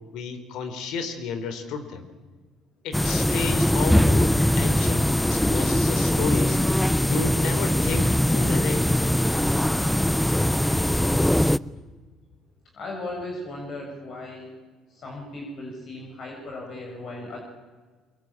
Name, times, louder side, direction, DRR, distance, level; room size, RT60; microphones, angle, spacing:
voice 1, 0.0-2.1 2.8-6.6 7.1-8.9, left 5 dB, 70° left, 9 dB, 3.7 m, -32 dB
sound 1, 2.9-11.6, left 1 dB, 5° left, 0.7 m, -21 dB
voice 2, 12.7-14.5 14.9-17.4, left 2 dB, 55° left, 0 dB, 7.2 m, -36 dB
23.5 x 22.5 x 9.0 m, 1.4 s
supercardioid pair, 70°, 0 cm